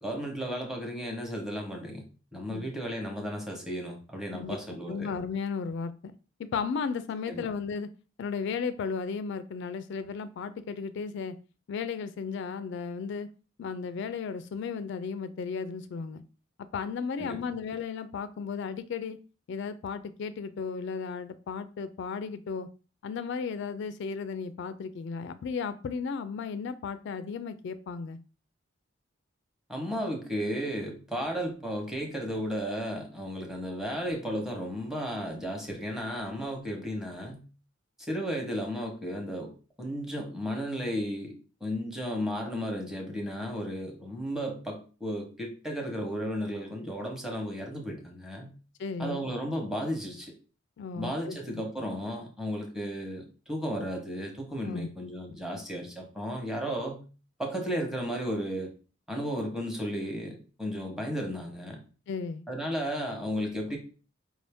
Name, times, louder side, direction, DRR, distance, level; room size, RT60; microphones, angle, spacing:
voice 1, 0.0-2.0 2.3-5.1 7.3-7.5 17.2-17.4 29.7-37.4 38.1-39.5 39.8-41.3 41.6-48.5 49.0-50.3 51.0-57.0 57.4-58.7 59.1-61.8 62.5-63.8, equal, 5° right, 1 dB, 0.9 m, -34 dB
voice 2, 4.4-6.1 6.5-7.9 8.2-11.4 11.7-13.3 13.6-16.2 16.7-19.2 19.5-22.7 23.0-28.2 48.8-49.3 50.8-51.6 54.6-54.9 62.1-62.5, left 5 dB, 65° left, 12 dB, 0.3 m, -35 dB
4.8 x 2.6 x 3.4 m, 0.35 s
head